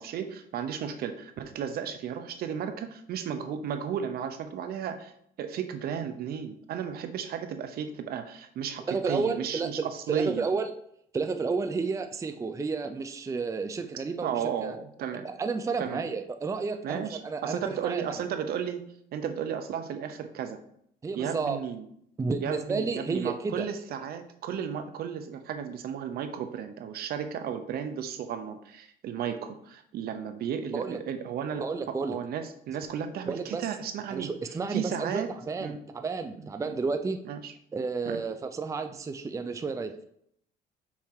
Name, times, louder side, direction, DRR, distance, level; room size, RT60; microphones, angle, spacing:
voice 1, 0.0-5.1 5.4-9.8 10.1-10.5 14.2-15.3 15.8-16.0 16.8-18.8 19.1-20.6 21.2-21.8 22.4-34.3 34.7-35.3 35.6-35.8 36.4-36.5 37.2-37.5 38.1-38.2, right 8 dB, 65° right, 8 dB, 0.8 m, -34 dB
voice 2, 8.9-10.7 11.1-14.8 15.2-18.0 21.0-21.6 22.2-23.7 30.7-31.0 31.6-32.2 33.3-33.6 34.1-37.2 37.7-40.0, right 4 dB, 20° right, 8 dB, 0.5 m, -31 dB
5.7 x 4.3 x 4.6 m, 0.69 s
cardioid pair, 110°, 17 cm